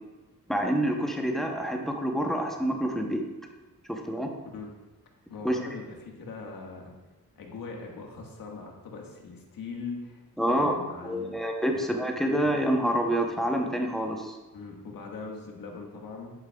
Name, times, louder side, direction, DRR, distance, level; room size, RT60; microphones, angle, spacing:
voice 1, 0.5-3.3 3.9-4.3 5.4-5.6 10.4-10.7 11.0-14.4, equal, ahead, 1 dB, 0.7 m, -27 dB
voice 2, 5.3-6.9 7.4-11.4 14.5-16.3, left 4 dB, 70° left, 0 dB, 1.5 m, -41 dB
10.5 x 8.7 x 2.3 m, 1.1 s
wide cardioid pair, 175°, 35 cm